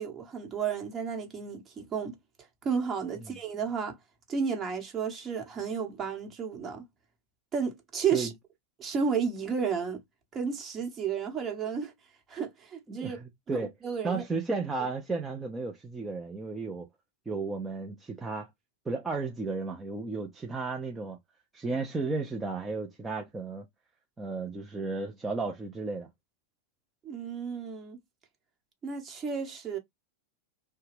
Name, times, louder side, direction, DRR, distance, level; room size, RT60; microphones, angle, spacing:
voice 1, 0.0-2.2 2.6-4.0 4.3-6.9 7.5-8.3 8.8-10.0 10.3-11.9 12.3-13.2 13.5-14.2 27.0-28.0 28.8-29.8, right 6 dB, 30° right, 1.1 m, -32 dB
voice 2, 12.9-13.7 14.0-16.9 17.3-18.5 18.9-21.2 21.5-23.7 24.2-26.1, right 3 dB, 15° right, 0.6 m, -34 dB
2.8 x 2.2 x 3.1 m
hypercardioid pair, 100°, 0 cm